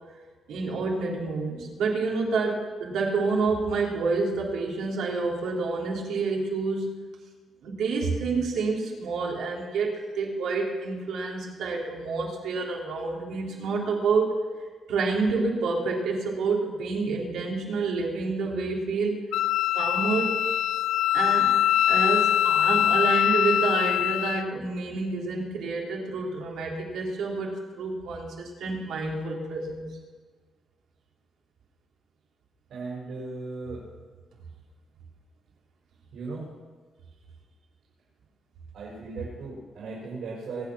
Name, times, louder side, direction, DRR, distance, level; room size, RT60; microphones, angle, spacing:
voice 1, 0.5-7.0 7.6-14.3 14.9-19.3 19.7-20.4 21.1-21.6 21.9-29.9, right 4 dB, 85° right, -2 dB, 3.3 m, -28 dB
Wind instrument woodwind instrument, 19.3-24.5, left 11 dB, 90° left, 0.4 m, -23 dB
voice 2, 32.7-33.9 36.1-36.5 38.7-40.6, right 3 dB, 70° right, -5 dB, 5.6 m, -37 dB
23.5 x 9.4 x 6.1 m, 1.4 s
cardioid pair, 150°, 0 cm